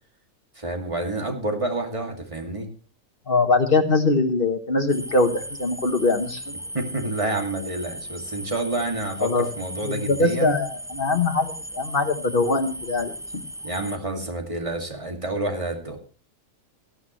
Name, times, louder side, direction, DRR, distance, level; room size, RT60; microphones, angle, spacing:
voice 1, 0.6-2.7 6.7-10.6 13.6-16.0, right 2 dB, 25° right, 3 dB, 2.4 m, -29 dB
voice 2, 3.3-6.5 9.2-9.5 9.8-13.1, left 3 dB, 45° left, 7 dB, 1.3 m, -22 dB
sound 1, 4.9-14.0, right 1 dB, 5° right, 0.4 m, -37 dB
17.5 x 13.0 x 3.1 m, 0.37 s
omnidirectional pair, 1.3 m